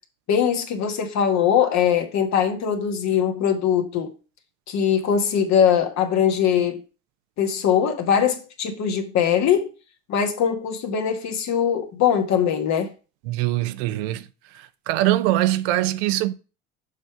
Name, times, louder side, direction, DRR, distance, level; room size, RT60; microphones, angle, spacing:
voice 1, 0.3-4.1 4.7-6.8 7.4-9.7 10.1-12.9, left 8 dB, 60° left, 1.4 m, -21 dB
voice 2, 13.3-14.2 14.9-16.3, right 15 dB, 85° right, 0.6 m, -22 dB
6.5 x 3.4 x 5.8 m
supercardioid pair, 85°, 32 cm